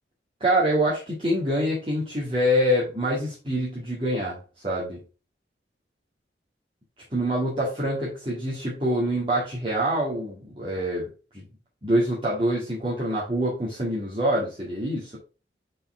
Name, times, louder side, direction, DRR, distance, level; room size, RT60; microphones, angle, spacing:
voice 1, 0.4-4.4 4.6-5.0 7.1-11.1 11.3-11.5 11.8-15.1, equal, 30° right, -7 dB, 2.0 m, -25 dB
5.2 x 4.3 x 4.9 m, 0.34 s
head